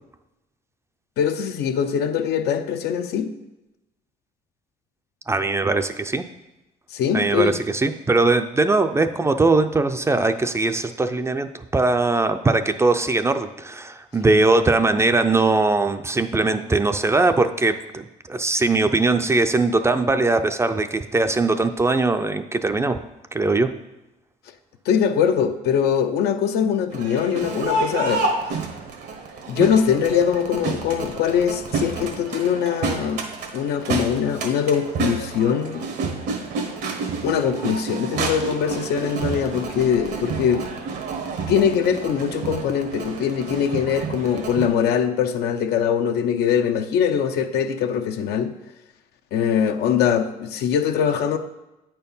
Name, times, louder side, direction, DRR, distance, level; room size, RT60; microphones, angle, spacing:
voice 1, 1.2-3.3 6.9-7.6 24.9-28.6 29.5-33.3 33.5-35.9 37.2-40.7 41.5-48.5 49.3-51.4, left 8 dB, 75° left, 8 dB, 0.7 m, -22 dB
voice 2, 5.3-6.2 7.1-23.0 23.3-23.7, right 3 dB, 15° right, 8 dB, 0.4 m, -20 dB
Crowd, 26.9-44.7, right 4 dB, 80° right, 1.3 m, -29 dB
8.7 x 4.5 x 5.4 m, 0.98 s
cardioid pair, 110°, 17 cm